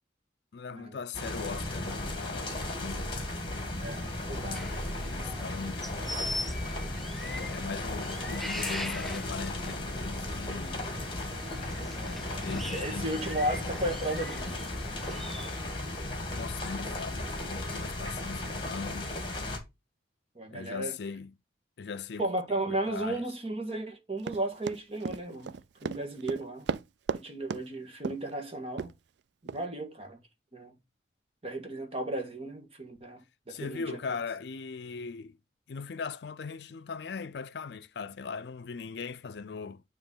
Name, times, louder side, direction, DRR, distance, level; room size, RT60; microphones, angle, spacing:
voice 1, 0.5-3.2 4.3-5.9 7.2-10.9 12.4-13.2 16.4-19.2 20.5-21.3 21.8-22.3 22.7-23.2 33.5-35.4 35.7-39.8, left 5 dB, 65° left, 0.4 m, -39 dB
sound 1, 1.1-19.6, left 2 dB, 30° left, 1.9 m, -35 dB
voice 2, 3.8-4.6 11.7-14.7 20.3-20.9 22.2-25.5 25.8-26.7 27.1-28.9 29.4-30.2 30.5-30.7 31.4-33.2 33.5-34.0, right 1 dB, 30° right, 1.6 m, -35 dB
sound 2, 4.5-15.6, left 1 dB, ahead, 0.4 m, -41 dB
Run, 24.2-27.2 27.5-27.7 28.0-28.3 28.8-28.9 29.5-29.6, right 5 dB, 70° right, 0.4 m, -34 dB
8.9 x 3.1 x 5.5 m
head